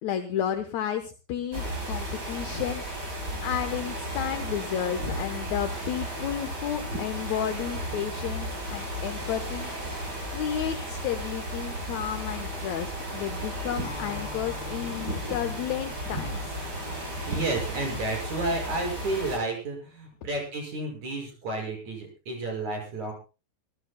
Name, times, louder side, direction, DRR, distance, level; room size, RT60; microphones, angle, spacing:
voice 1, 0.0-2.8 3.1-9.7 10.3-16.6, left 9 dB, 65° left, 7 dB, 2.0 m, -32 dB
sound 1, 1.5-19.4, equal, 25° right, 6.0 m, -34 dB
Acoustic guitar, 13.8-18.3, left 6 dB, 85° left, 4.6 m, -46 dB
voice 2, 17.3-23.1, right 2 dB, 50° right, 1 dB, 7.2 m, -31 dB
27.0 x 14.5 x 2.2 m, 0.32 s
omnidirectional pair, 4.3 m